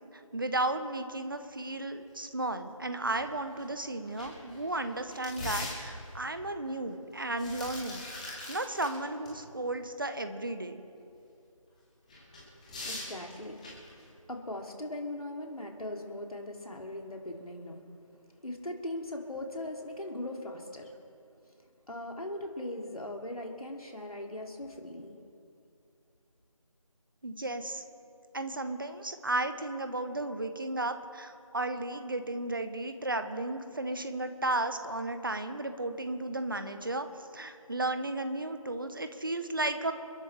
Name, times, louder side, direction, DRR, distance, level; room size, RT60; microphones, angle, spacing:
voice 1, 0.3-8.0 8.5-10.8 27.2-27.8 28.3-37.1 37.3-39.9, right 2 dB, 40° right, 9 dB, 1.0 m, -34 dB
sound 1, 3.1-3.2 3.6-3.7 4.1-6.2 7.1-8.9 9.3-9.4 12.1-14.0, left 2 dB, 10° left, 2.0 m, -41 dB
voice 2, 12.8-13.7 13.9-17.8 18.4-21.0 21.5-25.2, left 1 dB, 90° left, 1 dB, 2.7 m, -40 dB
29.0 x 11.0 x 3.4 m, 2.5 s
figure-of-eight pair, 170°, 18 cm